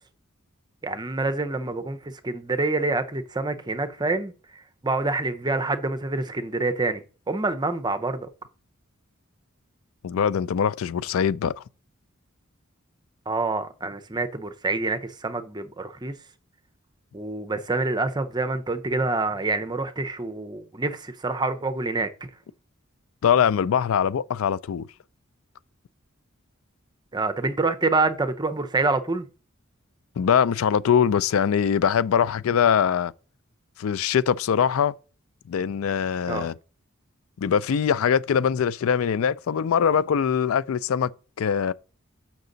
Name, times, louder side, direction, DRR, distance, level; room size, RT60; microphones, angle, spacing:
voice 1, 0.8-8.3 13.3-16.1 17.1-22.3 27.1-29.3 36.3-36.5, right 3 dB, 20° right, 0.6 m, -27 dB
voice 2, 10.0-11.6 23.2-24.9 30.2-33.1 33.8-34.9 35.5-36.5 37.4-41.1 41.4-41.7, left 7 dB, 80° left, 0.4 m, -22 dB
6.7 x 5.9 x 3.9 m
head